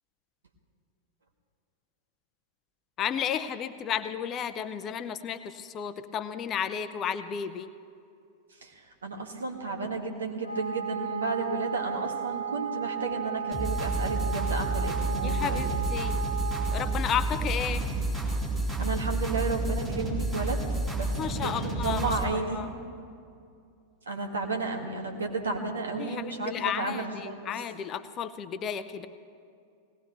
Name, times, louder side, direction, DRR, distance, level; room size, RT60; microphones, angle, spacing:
voice 1, 3.0-7.7 15.2-16.2 16.7-17.8 21.2-22.7 26.0-29.1, left 8 dB, 30° left, 12 dB, 0.6 m, -33 dB
voice 2, 8.6-15.7 18.8-21.1 21.4-22.6 24.0-27.5, right 3 dB, 70° right, 2 dB, 1.6 m, -33 dB
Wind instrument woodwind instrument, 10.4-17.0, right 7 dB, 80° left, 0.9 m, -34 dB
sound 1, 13.5-22.2, right 2 dB, 15° right, 3.0 m, -30 dB
20.0 x 18.0 x 3.1 m, 2.4 s
figure-of-eight pair, 90°, 0 cm